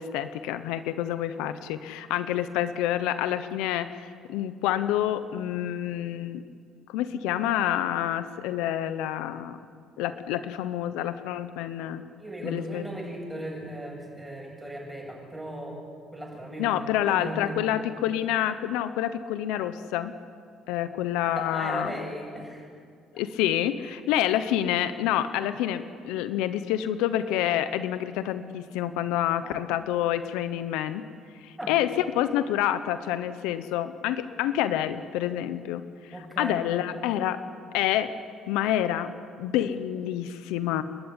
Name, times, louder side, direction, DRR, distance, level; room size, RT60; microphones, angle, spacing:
voice 1, 0.0-6.4 6.9-9.6 10.0-12.0 12.4-12.8 16.6-20.1 20.7-21.9 23.2-31.0 31.4-35.8 36.4-37.4 37.7-38.1 38.5-39.1 39.4-40.8, left 11 dB, 85° left, 11 dB, 1.0 m, -28 dB
voice 2, 12.2-15.8 16.1-17.6 21.2-22.7 29.4-29.8 31.6-31.7 36.1-36.7, right 1 dB, 5° right, 0 dB, 8.0 m, -37 dB
29.5 x 12.0 x 9.9 m, 2.2 s
supercardioid pair, 90°, 0 cm